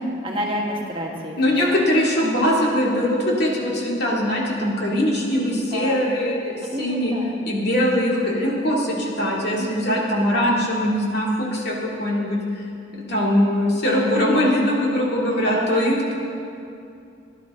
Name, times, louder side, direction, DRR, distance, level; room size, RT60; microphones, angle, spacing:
voice 1, 0.2-1.4 1.7-1.8 4.1-4.3 5.7-6.0 6.6-7.3 9.6-10.0 15.3-15.9, equal, 30° right, -2 dB, 1.5 m, -29 dB
voice 2, 1.4-7.1 7.5-12.6 12.9-16.1, left 1 dB, 60° left, -3 dB, 2.5 m, -21 dB
17.0 x 11.0 x 3.7 m, 2.5 s
head